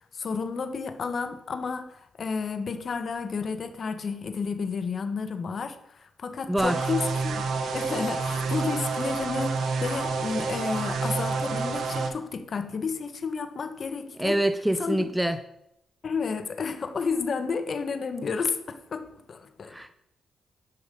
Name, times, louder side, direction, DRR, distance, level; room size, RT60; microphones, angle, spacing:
voice 1, 0.1-7.4 7.7-14.4 14.8-15.1 16.0-19.7, left 5 dB, 55° left, 9 dB, 1.1 m, -31 dB
voice 2, 6.5-6.8 14.2-15.4 19.7-19.9, right 1 dB, 10° right, 10 dB, 0.6 m, -25 dB
sound 1, 6.6-12.1, right 4 dB, 75° right, 0.9 m, -29 dB
10.0 x 5.5 x 5.3 m, 0.82 s
cardioid pair, 65°, 0 cm